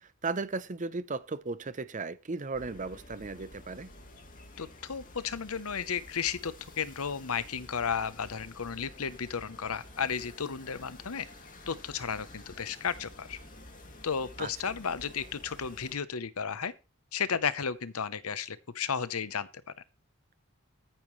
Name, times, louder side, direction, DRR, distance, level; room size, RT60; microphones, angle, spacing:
voice 1, 0.0-3.9 14.4-14.7, right 3 dB, 35° right, 0.7 m, -36 dB
sound 1, 2.5-15.9, left 2 dB, 40° left, 2.6 m, -51 dB
voice 2, 4.6-11.3 11.7-13.4 14.0-16.7 17.1-19.5, left 6 dB, 85° left, 0.9 m, -33 dB
14.0 x 8.9 x 3.2 m
head